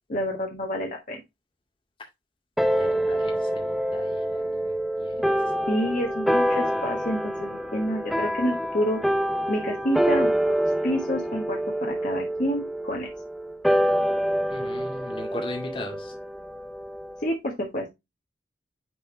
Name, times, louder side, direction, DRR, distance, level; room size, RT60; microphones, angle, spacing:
voice 1, 0.1-1.2 5.7-9.0 9.5-13.1 17.2-17.9, equal, 50° left, 0 dB, 1.4 m, -29 dB
sound 1, 2.6-17.3, equal, ahead, 0.5 m, -26 dB
voice 2, 2.8-5.2 14.5-16.1, left 1 dB, 30° left, 1 dB, 2.1 m, -38 dB
9.9 x 3.6 x 3.1 m, 0.21 s
head